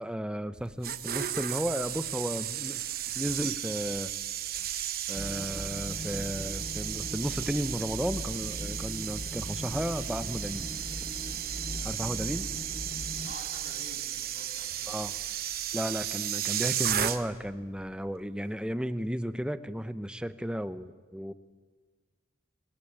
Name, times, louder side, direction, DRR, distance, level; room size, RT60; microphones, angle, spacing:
voice 1, 0.0-2.8 3.2-4.1 5.1-10.7 11.8-12.5 14.9-15.1 15.7-21.3, equal, 5° right, 12 dB, 0.7 m, -34 dB
sound 1, 0.6-17.5 17.8-18.1, right 11 dB, 50° right, 1.1 m, -34 dB
sound 2, 5.1-13.3, left 1 dB, 15° left, 1.1 m, -40 dB
voice 2, 11.8-12.8 13.2-15.2, left 1 dB, 75° left, 2 dB, 4.2 m, -51 dB
22.5 x 21.0 x 8.8 m, 1.4 s
head